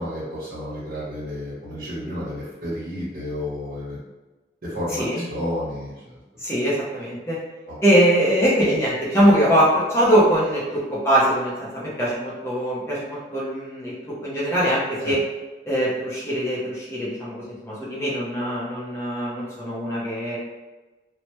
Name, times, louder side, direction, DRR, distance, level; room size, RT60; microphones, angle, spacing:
voice 1, 0.0-4.0 4.6-5.9 7.7-7.8 15.0-15.1, left 1 dB, 55° right, -8 dB, 0.9 m, -31 dB
voice 2, 4.9-5.3 6.4-7.4 7.8-15.2 15.7-20.4, equal, 15° left, -8 dB, 0.6 m, -22 dB
3.2 x 2.1 x 2.9 m, 1.2 s
head